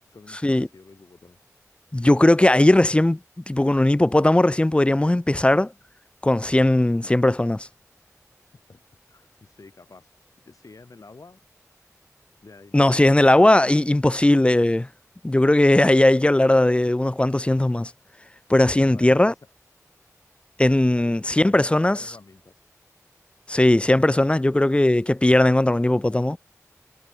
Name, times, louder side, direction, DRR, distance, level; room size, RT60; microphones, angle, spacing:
voice 1, 0.1-1.4 8.7-10.1 10.4-11.4 12.4-13.2 18.7-19.4 21.0-22.7, left 3 dB, 75° left, 4.6 m, -48 dB
voice 2, 1.9-3.2 3.5-5.7 6.2-7.7 12.7-14.9 15.2-17.9 18.5-19.3 20.6-22.0 23.5-26.4, left 1 dB, 20° left, 0.5 m, -18 dB
wide cardioid pair, 50°, 6 cm